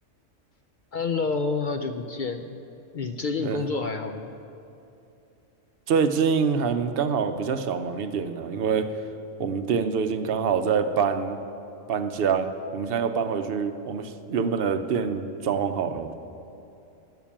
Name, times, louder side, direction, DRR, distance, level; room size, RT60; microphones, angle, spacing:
voice 1, 0.9-2.6 2.9-4.4, left 4 dB, 60° left, 7 dB, 0.5 m, -29 dB
voice 2, 5.9-8.9 9.4-11.4 11.9-16.1, right 6 dB, 55° right, 8 dB, 0.8 m, -25 dB
14.5 x 5.9 x 8.7 m, 2.7 s
omnidirectional pair, 1.3 m